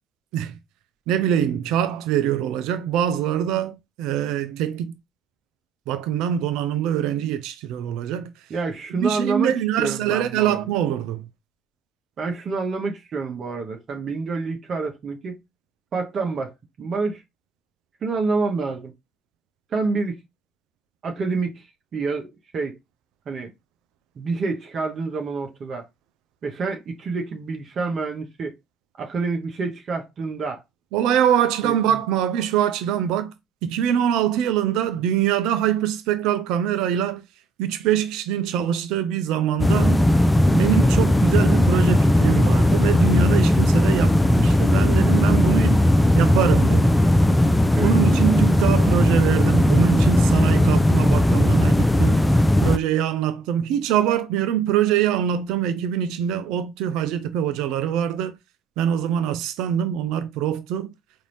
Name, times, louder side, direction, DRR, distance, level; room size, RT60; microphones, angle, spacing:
voice 1, 1.1-4.9 5.9-8.3 9.0-11.2 30.9-33.3 33.6-37.2 37.6-40.1 40.5-45.8 46.1-47.0 47.8-52.2 52.6-58.4 58.8-60.9, right 10 dB, 70° right, 0.4 m, -23 dB
voice 2, 8.5-10.6 12.2-15.4 15.9-16.5 16.8-17.2 18.0-18.9 19.7-20.2 21.0-21.7 21.9-22.7 23.3-23.5 24.2-25.9 26.4-28.5 29.0-30.6 31.6-32.0 40.8-41.1 47.7-47.9, right 4 dB, 50° right, 0.8 m, -28 dB
sound 1, 39.6-52.8, left 1 dB, 10° left, 0.4 m, -17 dB
3.9 x 2.6 x 3.1 m
hypercardioid pair, 60°, 0 cm